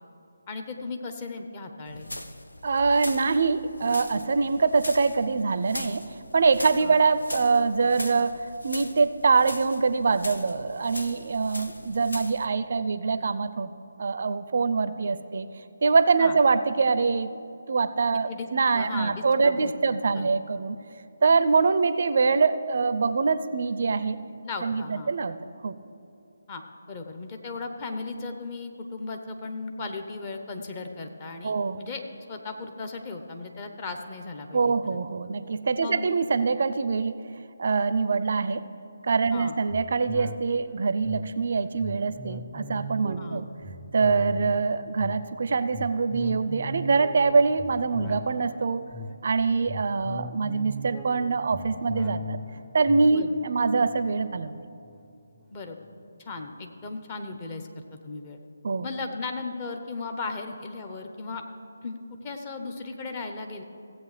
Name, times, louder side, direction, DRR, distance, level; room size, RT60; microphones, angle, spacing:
voice 1, 0.5-2.1 6.8-7.0 16.2-16.4 18.3-18.5 18.7-20.3 24.4-25.1 26.5-32.0 32.3-35.0 35.8-36.1 39.3-39.5 43.2-43.4 53.1-53.3 55.5-55.8 56.2-58.4 58.8-61.4 61.8-63.6, left 3 dB, 30° left, 4 dB, 0.9 m, -36 dB
sound 1, 1.9-12.5, left 1 dB, 85° left, 0.7 m, -40 dB
voice 2, 2.6-13.7 14.0-15.5 15.8-17.3 17.7-20.8 21.2-24.2 24.6-25.3 25.6-25.7 31.4-31.8 34.5-37.3 37.6-38.7 39.0-43.4 43.9-48.9 49.2-52.4 52.7-54.5 58.6-58.9, right 4 dB, 55° right, 13 dB, 0.4 m, -24 dB
sound 2, 39.7-55.4 55.8-55.9, left 1 dB, 5° left, 0.6 m, -40 dB
16.5 x 8.0 x 3.3 m, 2.8 s
figure-of-eight pair, 155°, 0 cm